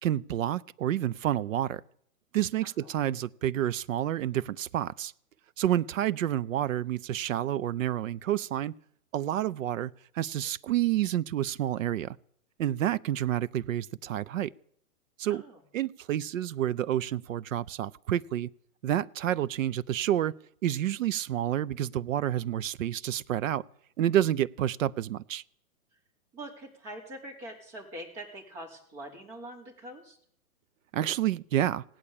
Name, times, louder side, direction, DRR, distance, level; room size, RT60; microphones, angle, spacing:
voice 1, 0.0-1.8 2.3-5.1 5.6-8.7 9.1-12.2 12.6-14.5 15.2-15.4 15.7-18.5 18.8-20.3 20.6-23.6 24.0-25.4 30.9-31.8, right 12 dB, 60° right, 0.6 m, -29 dB
voice 2, 26.3-30.2, right 1 dB, 30° right, 4.8 m, -44 dB
16.5 x 9.8 x 8.6 m
hypercardioid pair, 150°, 45 cm